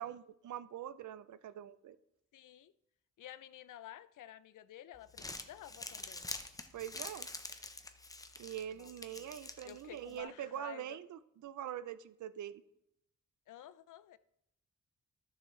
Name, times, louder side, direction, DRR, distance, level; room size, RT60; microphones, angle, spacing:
voice 1, 0.0-2.0 6.7-7.3 8.4-12.6, right 10 dB, 70° right, 0.5 m, -44 dB
voice 2, 2.3-2.7 3.2-6.3 8.7-9.3 9.6-11.0 13.5-14.2, left 12 dB, 90° left, 0.5 m, -52 dB
Crumpling crinkling, 4.9-10.2, left 2 dB, 10° left, 0.5 m, -47 dB
14.5 x 6.8 x 3.1 m
wide cardioid pair, 170°, 30 cm